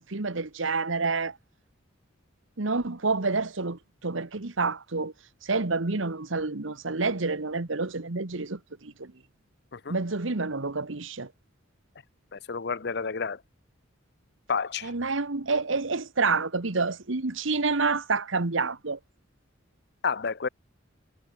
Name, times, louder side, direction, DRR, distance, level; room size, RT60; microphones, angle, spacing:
voice 1, 0.1-1.4 2.6-5.1 5.4-9.1 9.9-11.3 14.8-19.0, right 3 dB, 70° right, 1.4 m, -28 dB
voice 2, 12.3-13.4 14.5-14.9 20.0-20.5, left 5 dB, 55° left, 0.8 m, -30 dB
head